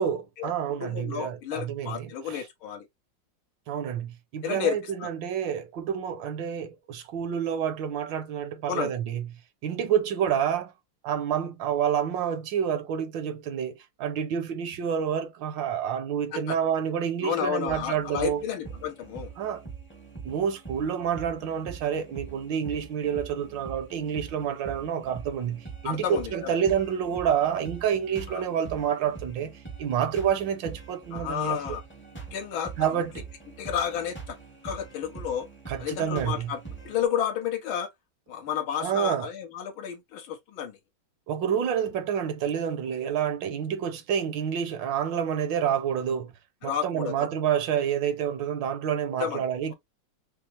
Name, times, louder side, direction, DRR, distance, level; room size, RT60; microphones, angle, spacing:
voice 1, 0.0-2.5 3.7-9.2 9.6-10.7 11.0-18.4 19.4-19.6 20.2-31.6 32.8-33.2 35.7-36.5 38.8-39.3 41.3-46.3 46.6-49.7, right 8 dB, 70° right, 1.3 m, -28 dB
voice 2, 0.8-2.8 4.4-5.1 8.7-8.9 16.3-16.6 17.2-19.3 25.8-26.5 28.3-28.4 31.1-31.8 32.3-32.7 33.6-34.4 34.6-35.5 35.8-36.6 36.9-37.9 38.3-40.8 46.6-47.3 49.2-49.4, left 9 dB, 80° left, 1.8 m, -31 dB
sound 1, 17.7-37.0, right 5 dB, 10° left, 0.5 m, -43 dB
5.6 x 2.0 x 2.9 m
omnidirectional pair, 2.2 m